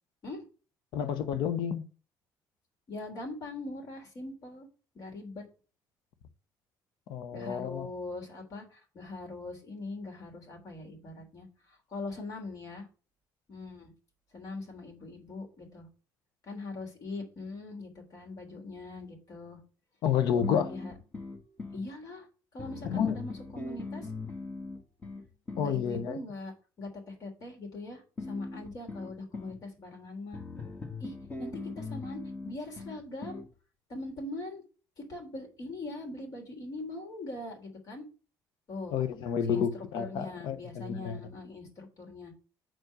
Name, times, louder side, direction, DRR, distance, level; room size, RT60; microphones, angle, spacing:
voice 1, 0.9-1.8 7.1-7.9 20.0-20.7 22.9-23.2 25.6-26.2 38.9-41.2, left 8 dB, 75° left, 0.8 m, -30 dB
voice 2, 2.9-4.7 4.9-5.4 7.3-12.9 13.5-13.9 14.3-15.9 16.4-19.6 20.2-21.0 21.7-22.3 22.5-24.1 25.6-26.5 26.8-28.0 28.3-30.4 31.0-33.4 33.9-34.6 35.0-38.0 38.7-38.9 39.5-39.6 40.0-42.3, left 2 dB, 50° left, 3.3 m, -41 dB
sound 1, 20.4-21.9 22.6-25.8 28.2-29.6 30.3-33.5, left 3 dB, 20° left, 1.6 m, -41 dB
6.1 x 4.6 x 6.4 m
cardioid pair, 110°, 8 cm